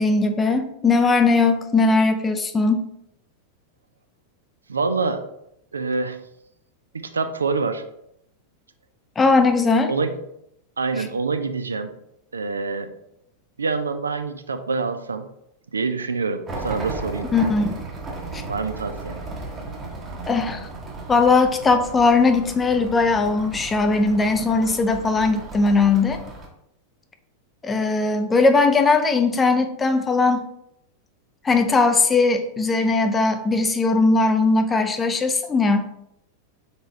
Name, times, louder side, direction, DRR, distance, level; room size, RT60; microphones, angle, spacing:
voice 1, 0.0-2.9 9.2-9.9 17.3-17.6 18.3-18.4 20.3-20.6 21.1-26.2 27.6-30.5 31.4-35.9, left 3 dB, 15° left, 7 dB, 0.4 m, -19 dB
voice 2, 4.7-5.3 5.7-6.2 6.9-7.8 9.9-10.1 10.8-11.9 12.3-12.9 13.6-15.3 15.7-17.3 18.5-19.2, right 4 dB, 75° right, 9 dB, 0.3 m, -26 dB
sound 1, 16.5-26.5, right 3 dB, 20° right, 1.0 m, -35 dB
4.0 x 3.5 x 3.0 m, 0.78 s
figure-of-eight pair, 90°, 0 cm